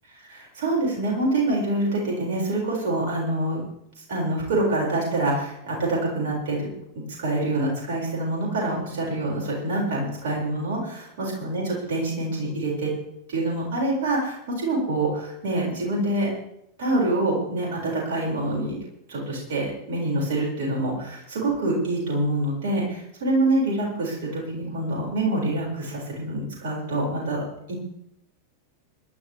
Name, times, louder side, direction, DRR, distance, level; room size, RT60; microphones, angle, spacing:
voice 1, 0.2-3.6 4.1-6.7 7.2-12.9 13.3-16.3 16.8-18.8 19.1-27.4 27.7-27.8, right 2 dB, 55° right, -3 dB, 7.2 m, -26 dB
26.0 x 12.0 x 3.8 m, 0.80 s
figure-of-eight pair, 90°, 0 cm